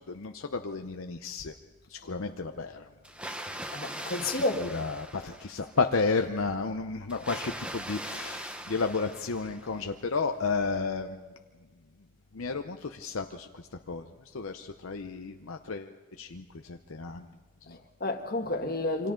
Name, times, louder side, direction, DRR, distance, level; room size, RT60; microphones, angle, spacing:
voice 1, 0.0-1.5 1.9-2.9 4.2-11.3 12.3-17.3 17.7-17.8, left 4 dB, 70° left, 5 dB, 0.7 m, -32 dB
Water, 3.0-5.9 7.1-9.9, right 1 dB, 5° right, 1.0 m, -40 dB
voice 2, 3.7-4.6 17.7-19.1, left 2 dB, 45° left, 4 dB, 1.7 m, -31 dB
28.0 x 25.5 x 3.8 m, 1.4 s
head